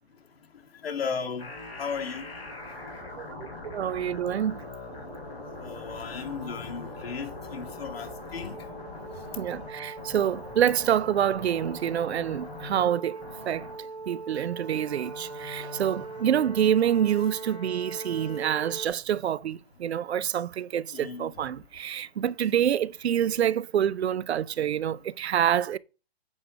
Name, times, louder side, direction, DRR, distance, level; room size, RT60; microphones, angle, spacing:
voice 1, 0.8-1.5 1.8-2.2 5.6-8.6 20.9-21.3, left 6 dB, 65° left, 1.9 m, -35 dB
sound 1, 1.4-18.9, equal, 15° left, 3.3 m, -40 dB
voice 2, 3.2-4.6 9.4-13.2 13.5-13.7 14.1-25.8, right 10 dB, 80° right, 0.5 m, -27 dB
8.4 x 4.9 x 5.0 m
hypercardioid pair, 150°, 32 cm